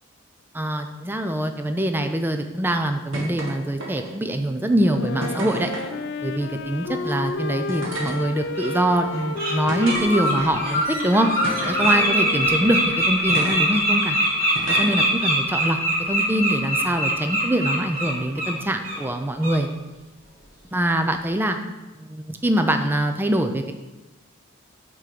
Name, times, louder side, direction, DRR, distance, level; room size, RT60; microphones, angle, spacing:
voice 1, 0.5-5.7 6.2-11.3 11.6-14.2 14.7-15.8 16.1-19.7 20.7-21.6 22.0-23.7, right 1 dB, 10° right, 6 dB, 0.4 m, -24 dB
sound 1, 3.1-3.5 3.8-4.2 5.2-5.9 7.0-7.1 7.7-8.2 8.8-9.0 9.7-10.6 11.4-12.1 13.3-13.6 14.5-15.0 16.1-16.2, right 1 dB, 65° right, 1.5 m, -32 dB
Wind instrument woodwind instrument, 4.8-13.2, left 3 dB, 60° left, 0.4 m, -32 dB
Bird, 7.7-7.8 8.5-8.7 9.1-9.5 9.8-18.5 18.8-19.0 19.4-19.6, equal, 45° right, 2.4 m, -23 dB
6.1 x 3.7 x 5.9 m, 1.1 s
head